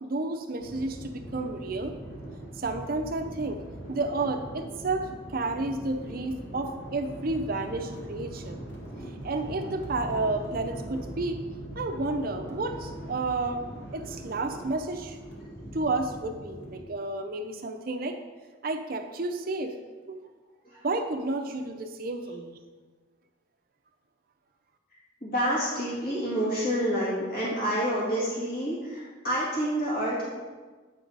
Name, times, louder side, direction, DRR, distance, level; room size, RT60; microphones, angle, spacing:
voice 1, 0.0-2.0 2.6-3.6 3.9-8.6 9.2-11.4 11.8-13.6 13.9-15.2 15.7-18.2 18.6-19.7 20.1-20.2 20.8-22.6, right 2 dB, 45° right, 5 dB, 0.6 m, -31 dB
sound 1, 0.6-16.8, right 1 dB, 70° left, 1.7 m, -41 dB
voice 2, 25.2-30.3, equal, 45° left, -7 dB, 2.0 m, -28 dB
8.3 x 4.0 x 4.7 m, 1.4 s
head